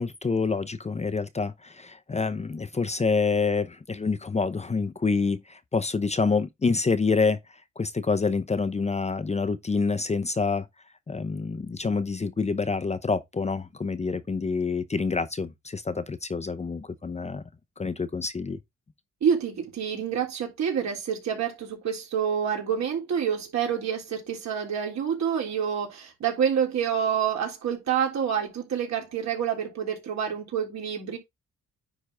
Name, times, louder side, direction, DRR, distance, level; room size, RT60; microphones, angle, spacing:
voice 1, 0.0-10.7 11.1-17.4 17.8-18.6, left 4 dB, 20° left, 0.8 m, -27 dB
voice 2, 19.2-31.2, right 8 dB, 65° right, 3.6 m, -27 dB
9.8 x 4.0 x 3.5 m
cardioid pair, 90°, 30 cm